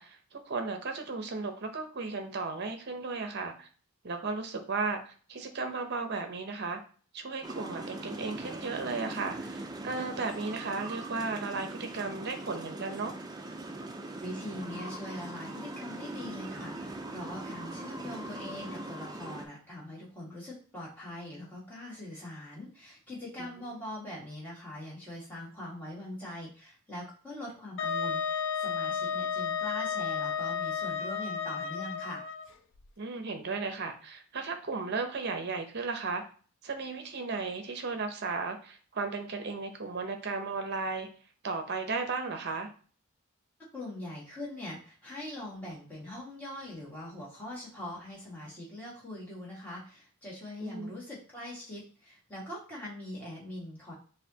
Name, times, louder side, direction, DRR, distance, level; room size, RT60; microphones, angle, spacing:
voice 1, 0.0-3.7 4.0-6.8 7.1-13.1 33.0-36.2 36.6-41.1 41.4-42.7 50.6-50.9, right 4 dB, 50° right, 6 dB, 0.7 m, -35 dB
sound 1, 7.4-19.5, right 2 dB, 15° right, 0.3 m, -41 dB
voice 2, 14.2-32.2 43.7-53.9, left 1 dB, 10° left, -7 dB, 1.7 m, -42 dB
Wind instrument woodwind instrument, 27.8-32.5, left 6 dB, 55° left, 0.4 m, -32 dB
6.4 x 2.6 x 2.8 m, 0.41 s
head